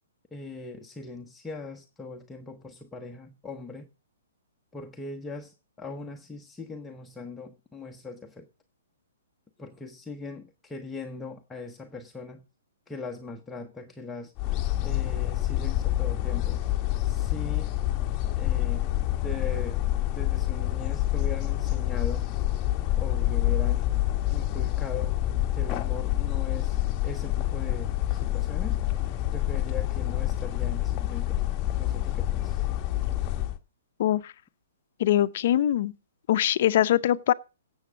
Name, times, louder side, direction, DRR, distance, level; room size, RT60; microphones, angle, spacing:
voice 1, 0.3-3.9 4.7-8.5 9.6-12.4 12.9-14.3 14.8-16.6 17.0-17.7 18.4-18.8 19.2-22.3 23.0-23.9 24.3-25.2 25.5-26.8 27.0-28.8 29.3-31.4 31.8-32.7, left 3 dB, 5° left, 0.9 m, -40 dB
sound 1, 14.4-33.6, left 14 dB, 20° left, 1.0 m, -27 dB
voice 2, 34.0-34.3 35.0-35.9 36.3-37.3, left 12 dB, 50° left, 0.7 m, -22 dB
17.0 x 7.2 x 5.1 m
hypercardioid pair, 160°, 0 cm